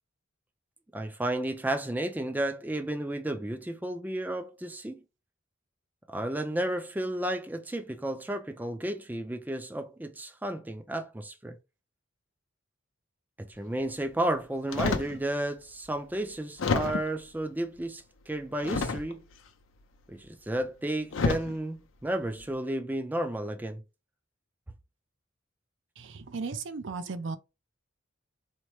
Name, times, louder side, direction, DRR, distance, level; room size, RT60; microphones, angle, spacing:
voice 1, 0.9-5.0 6.1-11.6 13.4-19.2 20.1-23.8, right 1 dB, 10° right, 0.4 m, -32 dB
sound 1, 14.7-15.2 15.9-16.0 16.6-17.2 18.6-19.3 20.5-20.6 21.1-21.6 22.2-22.5, left 4 dB, 75° left, 0.5 m, -29 dB
voice 2, 26.0-27.4, right 4 dB, 65° right, 0.5 m, -36 dB
4.2 x 2.0 x 3.1 m
head